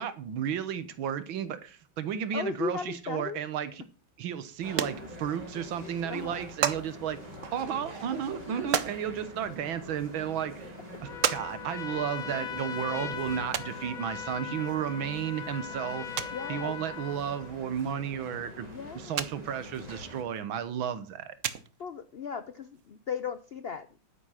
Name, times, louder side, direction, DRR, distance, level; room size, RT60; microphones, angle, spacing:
voice 1, 0.0-3.8 4.2-7.2 7.5-18.7 18.9-21.4, right 9 dB, 80° right, 1.9 m, -33 dB
voice 2, 2.3-3.4 6.1-6.4 16.3-16.8 18.7-19.2 21.8-23.9, left 6 dB, 70° left, 0.5 m, -36 dB
sound 1, 4.3-4.4 4.7-5.6 5.9-6.0 6.2-6.8 7.3-9.0 9.8-9.9 10.4-10.5 11.2-11.5 11.7-11.8 13.5-13.7 14.9-15.0 15.4-15.5 15.7-15.8 16.2-16.4 17.8-17.9 18.3-18.4 19.2-19.3 19.6-19.7 21.0-21.1 21.4-21.9 22.8-22.9 23.1-23.2 23.3-23.4, right 8 dB, 50° right, 1.0 m, -31 dB
sound 2, 4.6-20.2, equal, 20° right, 4.3 m, -45 dB
Trumpet, 11.0-17.5, left 8 dB, 50° left, 1.4 m, -39 dB
11.0 x 9.7 x 5.8 m
omnidirectional pair, 2.2 m